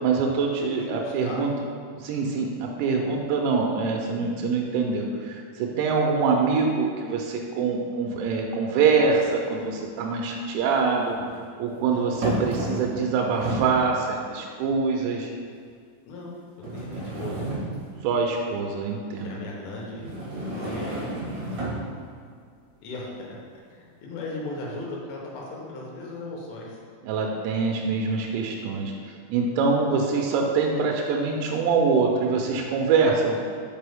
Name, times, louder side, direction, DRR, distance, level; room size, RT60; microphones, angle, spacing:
voice 1, 0.0-1.5 2.0-11.2 11.6-15.3 18.0-19.3 27.0-33.4, right 4 dB, 85° right, 1 dB, 2.5 m, -24 dB
voice 2, 0.8-1.6 11.9-12.1 16.1-16.4 16.7-17.4 19.1-20.1 20.4-21.7 22.8-23.4 23.7-26.8, left 2 dB, 80° left, -3 dB, 3.4 m, -37 dB
sound 1, 9.2-9.3 10.7-11.4 12.2-13.0 13.3-13.8 14.6-14.7 15.5-15.6 16.6-18.0 19.9-21.9, right 1 dB, 60° right, 2.0 m, -31 dB
6.0 x 5.1 x 3.5 m, 2.1 s
omnidirectional pair, 5.6 m